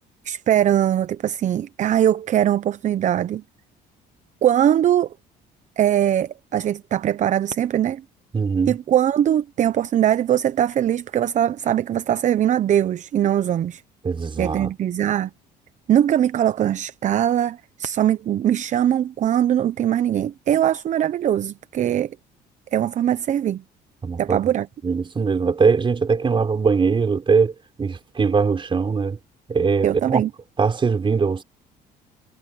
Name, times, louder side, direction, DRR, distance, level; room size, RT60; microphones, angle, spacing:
voice 1, 0.2-3.4 4.4-5.1 5.8-8.0 8.7-13.8 14.4-15.3 15.9-22.2 22.7-23.6 24.2-24.7 29.8-30.3, right 10 dB, 45° right, 0.6 m, -21 dB
voice 2, 8.3-8.7 14.0-14.7 24.0-24.4 24.8-29.2 29.5-30.2 30.6-31.4, right 5 dB, 30° right, 3.9 m, -21 dB
cardioid pair, 110°, 17 cm